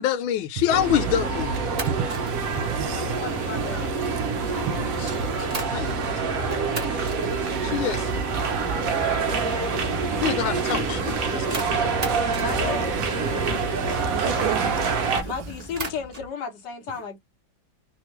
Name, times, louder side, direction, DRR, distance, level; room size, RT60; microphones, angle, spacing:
voice 1, 0.0-1.5 4.5-4.8 5.7-6.4 7.6-8.0 10.2-11.6 14.3-14.4, left 11 dB, 85° left, 1.4 m, -27 dB
sound 1, 0.7-15.2, right 4 dB, 60° right, 1.0 m, -26 dB
sound 2, 1.5-6.0 6.5-16.3, right 3 dB, 30° right, 0.7 m, -41 dB
voice 2, 1.9-3.1 4.7-5.3 13.3-14.9 15.2-15.3, right 9 dB, 80° right, 1.4 m, -32 dB
voice 3, 2.5-3.9 12.3-12.9 15.2-17.2, left 6 dB, 65° left, 1.4 m, -34 dB
sound 3, 7.2-16.3, left 1 dB, 35° left, 0.5 m, -39 dB
3.5 x 2.4 x 3.0 m
omnidirectional pair, 2.2 m